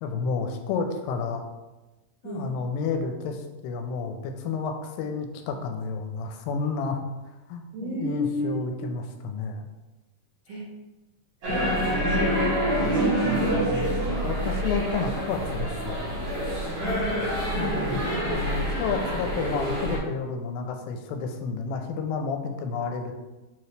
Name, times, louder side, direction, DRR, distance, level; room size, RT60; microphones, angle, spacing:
voice 1, 0.0-1.4 2.2-7.0 7.5-9.7 14.2-16.0 17.5-23.1, left 5 dB, 85° left, 5 dB, 2.3 m, -31 dB
voice 2, 7.7-8.9 10.5-10.7 11.4-14.0 16.8-17.7, equal, 85° right, -5 dB, 1.4 m, -33 dB
sound 1, 11.4-20.0, equal, 55° right, 2.3 m, -26 dB
5.1 x 2.9 x 3.2 m, 1.1 s
omnidirectional pair, 4.0 m